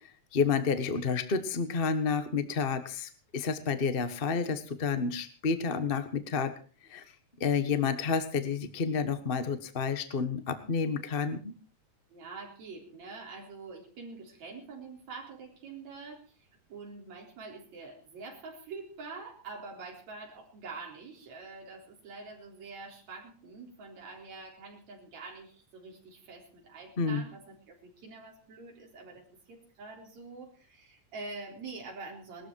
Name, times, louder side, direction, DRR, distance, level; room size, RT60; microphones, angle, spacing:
voice 1, 0.0-6.5 6.9-7.0 7.4-11.6 27.0-27.2, left 5 dB, 45° left, 11 dB, 0.7 m, -30 dB
voice 2, 12.1-32.5, right 4 dB, 70° right, 0 dB, 5.2 m, -46 dB
20.0 x 13.5 x 4.7 m, 0.37 s
omnidirectional pair, 3.3 m